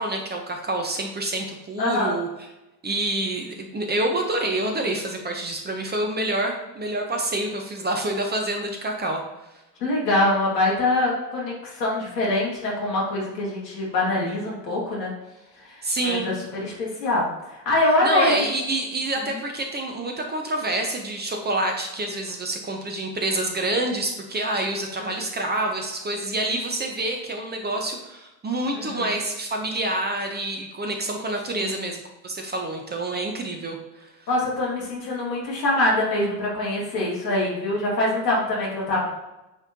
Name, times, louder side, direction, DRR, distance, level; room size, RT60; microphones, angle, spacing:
voice 1, 0.0-2.3 2.8-9.2 15.8-16.3 18.0-34.1, right 1 dB, 20° right, 2 dB, 1.0 m, -27 dB
voice 2, 1.8-2.2 9.8-15.1 15.6-16.3 16.6-18.4 25.0-25.2 28.7-29.1 31.5-31.8 34.3-39.1, left 2 dB, 75° left, -4 dB, 2.1 m, -24 dB
9.0 x 3.6 x 2.9 m, 0.98 s
figure-of-eight pair, 60°, 49 cm